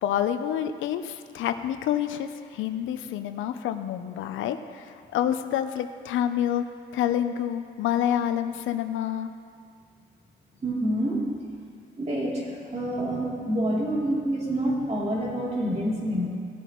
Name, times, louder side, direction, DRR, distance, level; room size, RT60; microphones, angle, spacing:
voice 1, 0.0-6.6 6.9-9.3, left 10 dB, 80° left, 9 dB, 0.6 m, -28 dB
voice 2, 10.6-11.2 12.0-16.3, right 1 dB, 35° right, -5 dB, 3.0 m, -27 dB
17.5 x 8.0 x 3.1 m, 2.2 s
cardioid pair, 90°, 20 cm